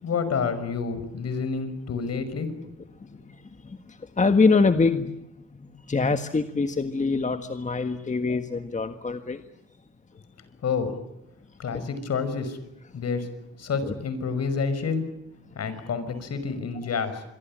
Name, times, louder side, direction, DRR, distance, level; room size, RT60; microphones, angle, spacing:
voice 1, 0.0-2.5 10.6-10.9 11.6-12.6 12.9-13.3 13.6-15.1 15.5-17.2, left 5 dB, 55° left, 12 dB, 5.8 m, -28 dB
voice 2, 3.0-5.1 5.6-9.4 11.7-11.8 13.8-13.9, left 4 dB, 25° left, 8 dB, 1.6 m, -25 dB
27.0 x 23.5 x 8.8 m, 0.88 s
cardioid pair, 90°, 30 cm